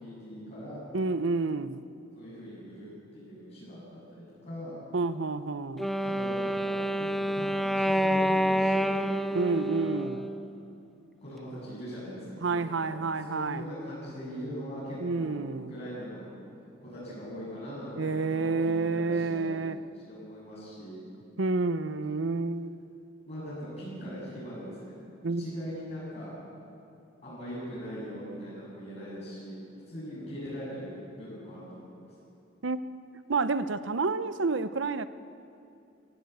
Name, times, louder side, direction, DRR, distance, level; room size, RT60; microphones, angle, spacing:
voice 1, 0.0-0.8 2.1-4.8 6.0-9.2 9.7-10.1 11.2-16.3 16.8-19.6 20.1-21.0 21.9-22.0 23.3-25.0 25.4-26.3 27.2-29.6 29.9-32.1, equal, 35° left, -9 dB, 7.8 m, -41 dB
voice 2, 0.9-1.8 4.9-5.9 9.3-10.2 12.4-13.6 15.0-15.7 18.0-19.8 21.4-22.8 25.2-25.4 32.6-32.8 33.3-35.1, right 3 dB, 75° right, 13 dB, 0.7 m, -29 dB
Wind instrument woodwind instrument, 5.8-10.8, equal, ahead, 0.5 m, -28 dB
23.0 x 16.0 x 8.4 m, 2.6 s
head